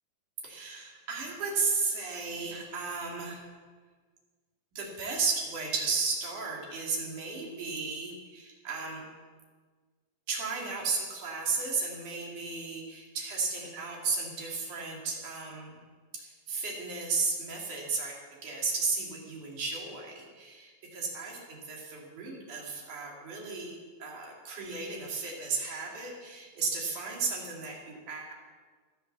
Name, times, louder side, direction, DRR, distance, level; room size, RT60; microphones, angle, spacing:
voice 1, 0.4-3.5 4.7-9.0 10.3-15.8 16.2-18.2 18.4-21.4 21.6-28.3, right 4 dB, 50° right, -1 dB, 3.8 m, -34 dB
15.5 x 11.5 x 6.8 m, 1.5 s
omnidirectional pair, 5.2 m